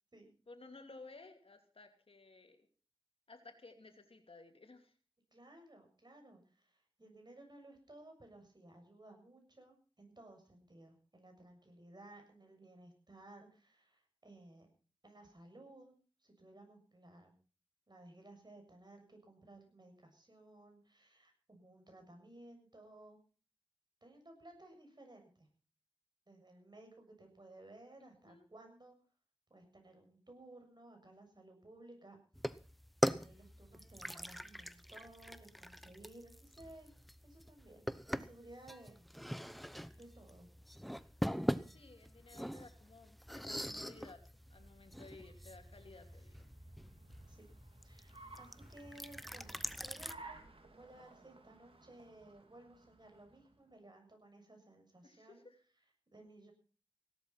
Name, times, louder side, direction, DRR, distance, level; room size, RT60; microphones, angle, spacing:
voice 1, 0.5-2.7 3.3-4.9 28.0-28.5 41.7-44.2 44.5-46.5 55.0-55.6, left 3 dB, 85° left, 6 dB, 2.6 m, -57 dB
voice 2, 5.3-14.7 15.0-17.3 17.9-23.2 24.0-25.5 26.3-29.0 29.5-32.2 33.1-36.9 37.2-39.0 39.9-40.5 47.3-47.5 47.8-55.5 56.1-56.5, right 1 dB, 50° right, 4 dB, 7.0 m, -58 dB
sound 1, 32.3-50.1, equal, ahead, 0.9 m, -42 dB
Car, 44.3-53.7, right 2 dB, 85° right, 2.7 m, -58 dB
17.0 x 12.0 x 5.8 m, 0.39 s
wide cardioid pair, 45°, 9 cm